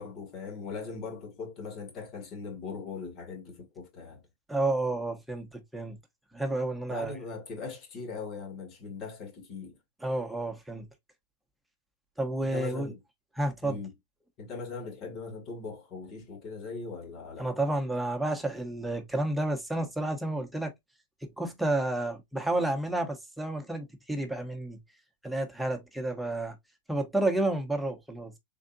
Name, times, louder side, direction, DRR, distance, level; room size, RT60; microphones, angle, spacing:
voice 1, 0.0-4.2 6.9-9.8 12.5-13.0 13.6-13.9 14.4-17.5, left 4 dB, 45° left, 1.8 m, -40 dB
voice 2, 4.5-6.0 6.3-7.1 10.0-10.8 12.2-12.9 13.4-13.8 17.4-20.7 21.2-24.8 25.2-26.5 26.9-28.3, right 2 dB, 5° right, 1.1 m, -30 dB
3.8 x 3.3 x 2.6 m
hypercardioid pair, 105°, 0 cm